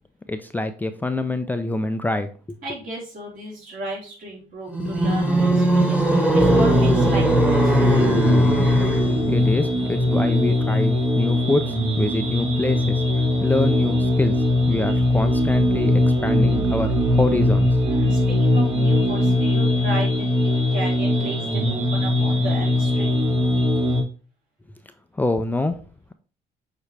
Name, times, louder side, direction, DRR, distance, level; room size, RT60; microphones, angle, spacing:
voice 1, 0.3-2.6 9.3-17.8 25.2-25.8, left 2 dB, 10° left, 7 dB, 0.4 m, -25 dB
voice 2, 2.6-8.0 17.8-23.1, right 1 dB, 55° right, -3 dB, 3.6 m, -34 dB
sound 1, 4.7-9.4, right 1 dB, 10° right, 1.4 m, -20 dB
sound 2, 6.4-24.0, left 1 dB, 30° right, 2.9 m, -20 dB
7.0 x 4.4 x 3.3 m, 0.37 s
cardioid pair, 110°, 17 cm